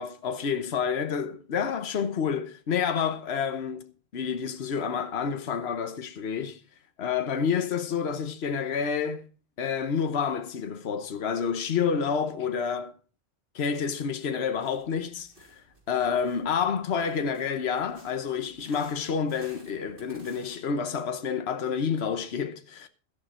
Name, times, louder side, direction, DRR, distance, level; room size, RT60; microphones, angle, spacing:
voice 1, 0.0-6.6 7.0-9.3 9.6-12.9 13.5-15.6 15.9-22.9, left 6 dB, 70° left, 1.2 m, -29 dB
sound 1, 14.6-20.6, right 2 dB, 55° right, 3.8 m, -56 dB
13.0 x 11.0 x 4.3 m
omnidirectional pair, 1.1 m